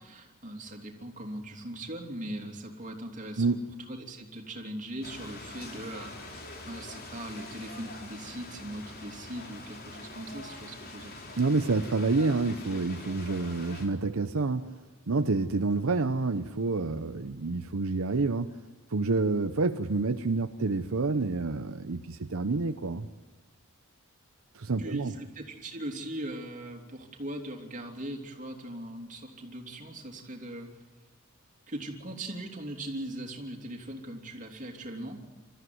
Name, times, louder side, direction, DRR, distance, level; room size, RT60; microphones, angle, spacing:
voice 1, 0.0-3.6 3.9-11.2 24.8-30.7 31.7-35.2, right 1 dB, 35° right, 2 dB, 3.1 m, -40 dB
sound 1, 5.0-13.9, left 2 dB, 45° left, 3.6 m, -44 dB
voice 2, 11.4-14.8 15.1-18.6 18.9-23.1 24.5-25.1, right 3 dB, 70° right, 8 dB, 0.8 m, -28 dB
25.5 x 14.0 x 9.4 m, 1.3 s
head